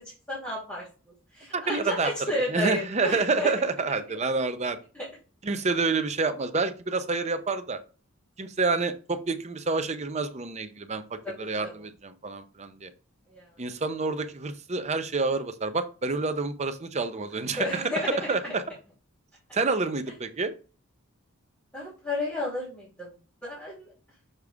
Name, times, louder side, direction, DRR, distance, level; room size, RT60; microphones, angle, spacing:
voice 1, 0.3-0.8 1.3-3.5 4.9-5.1 11.2-11.9 13.3-13.5 17.5-18.5 21.7-23.1 23.4-23.9, left 1 dB, 5° left, -11 dB, 3.0 m, -32 dB
voice 2, 1.5-2.1 2.5-4.8 5.4-7.8 8.4-11.0 11.4-12.9 13.6-18.0 18.3-18.6 19.5-20.5, right 3 dB, 30° right, 9 dB, 0.7 m, -28 dB
6.7 x 4.7 x 3.6 m, 0.36 s
head